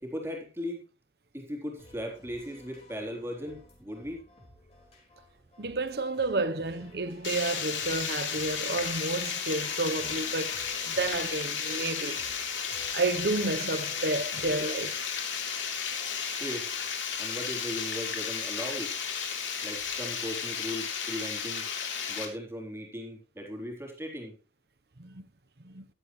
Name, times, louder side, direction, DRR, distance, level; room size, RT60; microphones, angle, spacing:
voice 1, 0.0-0.8 1.3-4.2 16.4-16.7 17.2-18.9 19.6-21.6 22.1-24.3, equal, 15° right, 3.8 m, -38 dB
sound 1, 1.8-14.9, left 1 dB, 35° left, 5.0 m, -54 dB
voice 2, 5.6-10.6 10.8-12.2 12.9-15.0 25.0-25.2 25.6-25.8, right 3 dB, 55° right, 0.9 m, -31 dB
Water, 7.2-22.3, left 7 dB, 90° left, 3.5 m, -33 dB
15.5 x 12.5 x 3.2 m
head